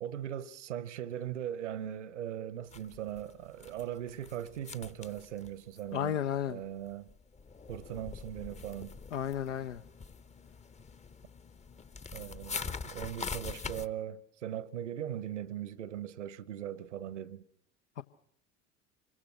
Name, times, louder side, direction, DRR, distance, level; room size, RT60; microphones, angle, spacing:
voice 1, 0.0-6.2 6.5-7.1 7.7-9.0 12.1-17.4, right 10 dB, 70° right, 1.1 m, -39 dB
sound 1, 2.7-6.5 6.8-13.9, left 5 dB, 20° left, 0.9 m, -44 dB
voice 2, 5.9-6.6 9.1-9.8 18.0-18.1, left 9 dB, 75° left, 0.9 m, -33 dB
26.5 x 22.0 x 5.9 m
figure-of-eight pair, 60°, 36 cm